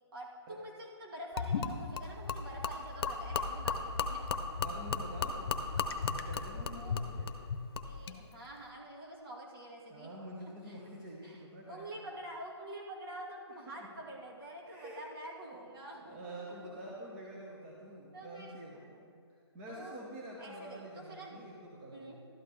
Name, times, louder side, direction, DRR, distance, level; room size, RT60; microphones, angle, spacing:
voice 1, 0.1-4.2 6.7-7.0 7.8-10.1 10.4-10.8 11.2-16.7 18.1-18.6 19.7-20.1 20.4-21.5 21.9-22.2, right 1 dB, 55° right, -4 dB, 2.8 m, -47 dB
Gurgling / Liquid, 1.4-8.2, left 5 dB, 55° left, 0.9 m, -35 dB
voice 2, 4.5-7.4 9.9-11.9 13.8-13.9 14.7-15.0 15.4-19.2 19.5-22.2, right 1 dB, 20° right, -4 dB, 1.1 m, -47 dB
12.5 x 11.0 x 3.2 m, 2.3 s
hypercardioid pair, 165°, 15 cm